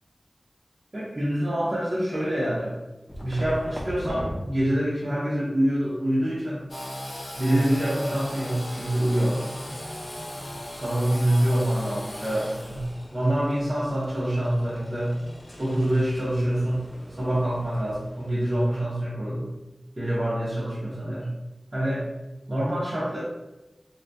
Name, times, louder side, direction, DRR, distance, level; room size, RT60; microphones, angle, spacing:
voice 1, 0.9-2.8 3.2-6.6 7.3-9.5 10.7-12.9 13.1-15.1 15.6-16.8 17.2-19.5 20.0-21.3 21.7-22.0 22.5-23.2, right 1 dB, 50° right, -9 dB, 0.6 m, -26 dB
sound 1, 3.1-4.4 6.0-18.8, equal, 15° left, 0.6 m, -43 dB
Engine / Sawing, 6.7-16.2, left 1 dB, 60° left, 0.6 m, -39 dB
2.6 x 2.2 x 2.2 m, 1.0 s
cardioid pair, 40°, 0 cm